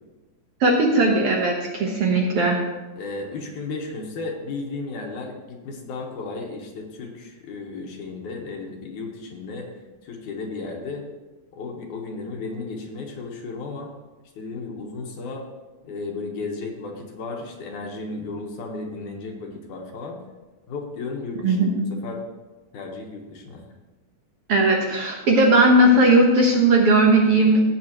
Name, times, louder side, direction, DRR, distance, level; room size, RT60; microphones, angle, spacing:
voice 1, 0.6-2.6 21.4-21.9 24.5-27.6, right 2 dB, 60° right, -1 dB, 1.7 m, -17 dB
voice 2, 3.0-9.7 10.0-11.0 11.5-13.9 14.4-15.5 15.8-20.2 20.7-21.7 22.0-22.2 22.7-23.6, left 3 dB, 75° left, 1 dB, 2.6 m, -34 dB
15.5 x 8.1 x 2.9 m, 1.2 s
omnidirectional pair, 3.6 m